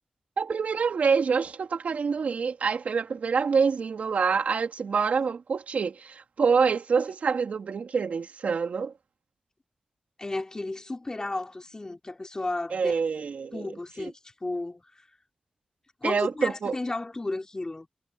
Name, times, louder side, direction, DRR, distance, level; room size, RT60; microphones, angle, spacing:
voice 1, 0.4-8.9 12.7-13.7 16.0-16.7, right 5 dB, 85° right, 3.3 m, -26 dB
voice 2, 10.2-13.0 13.5-14.1 14.4-14.8 16.0-17.9, left 2 dB, 30° left, 3.1 m, -33 dB
wide cardioid pair, 80°, 2 cm